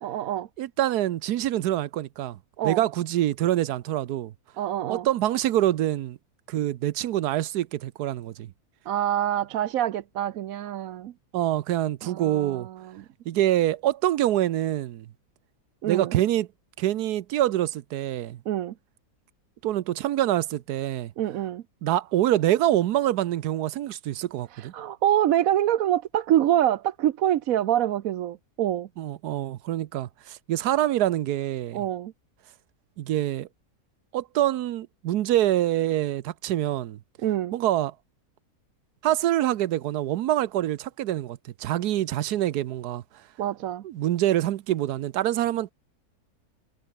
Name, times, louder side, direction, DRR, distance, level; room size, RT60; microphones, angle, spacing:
voice 1, 0.0-0.5 2.6-2.8 4.6-5.1 8.9-11.1 12.0-13.0 15.8-16.1 18.5-18.7 21.2-21.6 24.5-28.9 31.7-32.1 37.2-37.5 43.4-43.8, right 11 dB, 70° right, 1.1 m, -26 dB
voice 2, 0.6-2.4 2.6-4.3 4.9-6.2 6.5-8.5 11.3-12.7 13.3-15.1 15.8-16.5 16.8-18.4 19.6-21.1 21.8-24.7 29.0-31.8 33.0-33.5 34.1-37.0 37.5-37.9 39.0-43.0 43.8-45.7, right 13 dB, 85° right, 1.3 m, -25 dB
omnidirectional pair, 1.6 m